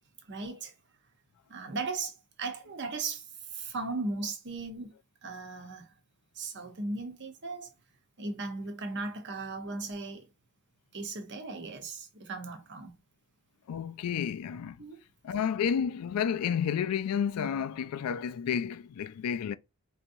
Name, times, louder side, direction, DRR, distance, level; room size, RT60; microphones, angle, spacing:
voice 1, 0.3-0.7 1.5-3.3 3.5-4.9 5.2-5.9 6.4-7.7 8.2-10.3 10.9-13.0 14.8-15.0, right 3 dB, 50° right, 0.9 m, -37 dB
voice 2, 13.7-14.8 15.2-19.5, left 7 dB, 90° left, 0.3 m, -31 dB
4.3 x 2.8 x 2.6 m
head